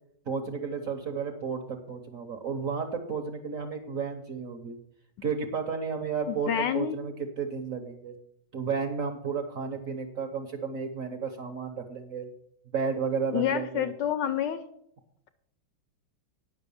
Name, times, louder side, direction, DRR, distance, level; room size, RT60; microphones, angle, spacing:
voice 1, 0.2-4.8 5.2-8.1 8.5-12.3 12.7-13.9, right 5 dB, 55° right, 5 dB, 1.0 m, -32 dB
voice 2, 6.3-7.0 13.3-14.6, left 10 dB, 70° left, 11 dB, 1.1 m, -28 dB
9.6 x 6.0 x 7.0 m, 0.73 s
omnidirectional pair, 2.3 m